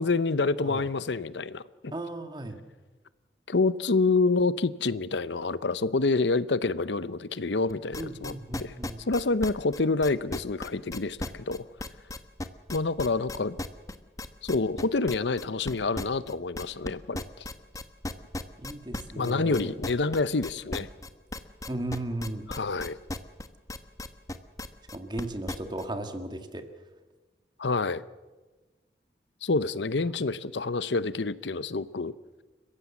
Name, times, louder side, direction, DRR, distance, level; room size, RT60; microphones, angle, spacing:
voice 1, 0.0-1.9 3.5-8.7 9.1-11.6 12.7-13.6 14.4-17.4 19.2-20.9 22.5-23.0 27.6-28.0 29.4-32.1, left 3 dB, 85° left, 16 dB, 0.8 m, -27 dB
voice 2, 1.9-2.6 8.0-9.0 18.6-19.7 21.7-22.5 24.9-26.7 30.1-30.3, right 1 dB, 25° right, 7 dB, 1.9 m, -36 dB
sound 1, 7.7-25.8, left 1 dB, 20° left, 1.1 m, -36 dB
30.0 x 16.0 x 7.3 m, 1.3 s
head